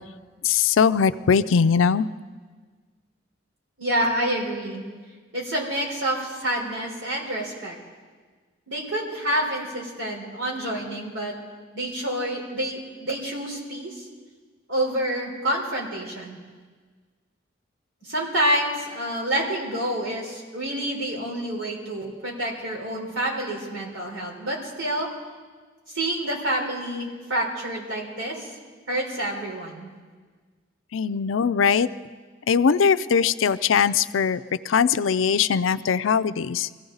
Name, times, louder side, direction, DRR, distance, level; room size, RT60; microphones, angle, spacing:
voice 1, 0.4-2.1 30.9-31.9 32.5-34.4 34.7-36.7, left 6 dB, 85° left, 13 dB, 0.5 m, -20 dB
voice 2, 3.8-4.8 5.3-7.8 8.7-11.3 11.7-14.1 14.7-16.4 18.0-25.1 25.9-28.5 28.9-29.9, right 1 dB, 75° right, -2 dB, 4.1 m, -28 dB
23.5 x 15.5 x 4.0 m, 1.5 s
head